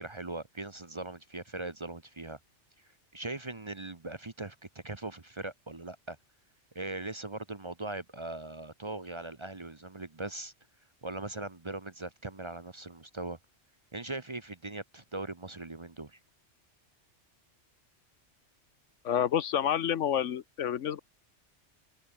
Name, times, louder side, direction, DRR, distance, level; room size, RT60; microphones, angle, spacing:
voice 1, 0.0-2.4 3.1-6.2 6.7-10.5 11.0-13.4 13.9-16.2, right 2 dB, 25° right, 0.9 m, -40 dB
voice 2, 19.0-21.0, left 9 dB, 90° left, 1.2 m, -29 dB
omnidirectional pair, 1.2 m